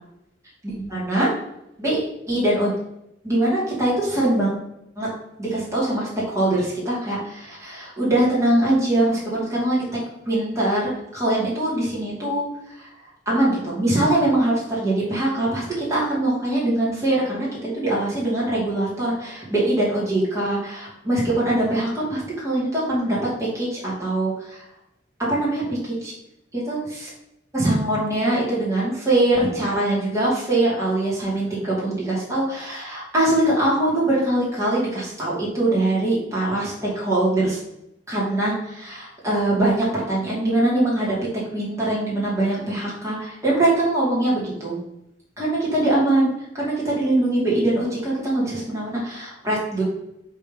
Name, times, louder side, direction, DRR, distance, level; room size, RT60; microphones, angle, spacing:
voice 1, 0.6-1.3 1.8-2.0 2.3-2.7 3.2-4.5 5.0-5.1 5.4-9.8 10.3-12.5 12.7-12.9 13.3-24.6 25.3-26.1 26.5-26.8 27.5-37.6 38.1-41.2 41.5-44.8 45.4-46.3 46.5-49.8, right 1 dB, 15° right, -7 dB, 2.6 m, -22 dB
7.3 x 3.6 x 5.3 m, 0.85 s
head